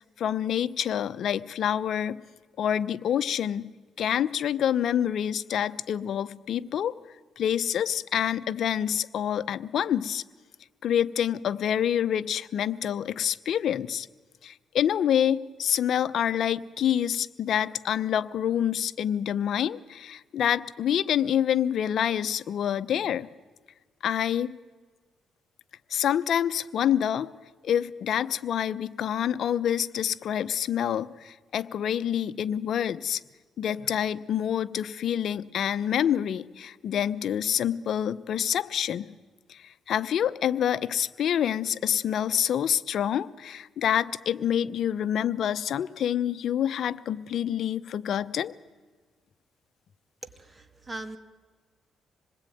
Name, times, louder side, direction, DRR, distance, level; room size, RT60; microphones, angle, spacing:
voice 1, 0.2-2.2 2.6-3.7 4.0-7.0 7.4-10.2 10.8-14.1 14.4-23.3 24.0-24.6 25.9-27.3 27.6-33.2 33.6-39.1 39.5-48.5, left 9 dB, 65° left, 12 dB, 0.9 m, -27 dB
voice 2, 50.2-51.2, right 2 dB, 25° right, 9 dB, 2.1 m, -40 dB
26.5 x 20.0 x 9.3 m, 1.4 s
cardioid pair, 90°, 0 cm